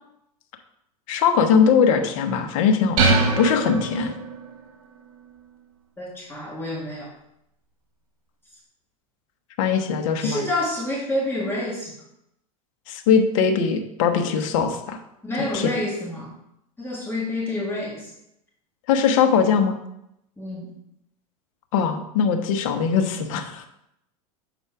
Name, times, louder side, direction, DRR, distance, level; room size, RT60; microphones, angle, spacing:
voice 1, 1.1-4.1 9.6-10.4 12.9-15.0 15.5-15.7 18.9-19.8 21.7-23.7, left 6 dB, 60° left, 5 dB, 1.1 m, -21 dB
sound 1, 3.0-4.6, right 3 dB, 65° right, 1.5 m, -22 dB
voice 2, 6.0-7.1 9.8-11.9 15.2-16.3 16.8-18.1 20.4-20.7, left 1 dB, 10° left, -4 dB, 1.8 m, -28 dB
6.9 x 4.3 x 4.7 m, 0.79 s
hypercardioid pair, 110°, 19 cm